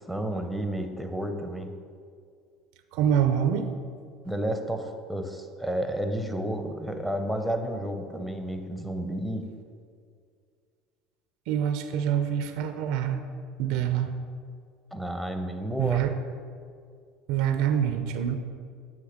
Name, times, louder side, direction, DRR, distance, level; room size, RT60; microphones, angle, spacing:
voice 1, 0.0-1.7 4.3-9.4 14.9-16.0, right 1 dB, ahead, 6 dB, 0.7 m, -31 dB
voice 2, 2.9-3.7 11.5-13.2 13.6-14.1 15.8-16.1 17.3-18.4, right 9 dB, 70° right, 8 dB, 0.4 m, -25 dB
8.0 x 3.1 x 5.0 m, 2.2 s
supercardioid pair, 90°, 0 cm